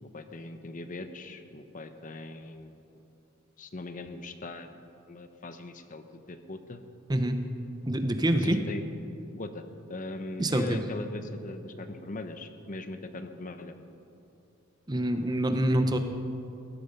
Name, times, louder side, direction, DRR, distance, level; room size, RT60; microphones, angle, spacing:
voice 1, 0.0-2.7 3.6-4.8 5.1-6.8 8.4-8.9 9.3-13.7, left 2 dB, 40° left, 8 dB, 0.8 m, -40 dB
voice 2, 7.9-8.6 10.4-10.8 14.9-16.0, right 1 dB, 20° right, 7 dB, 0.8 m, -26 dB
17.0 x 13.5 x 5.3 m, 2.7 s
head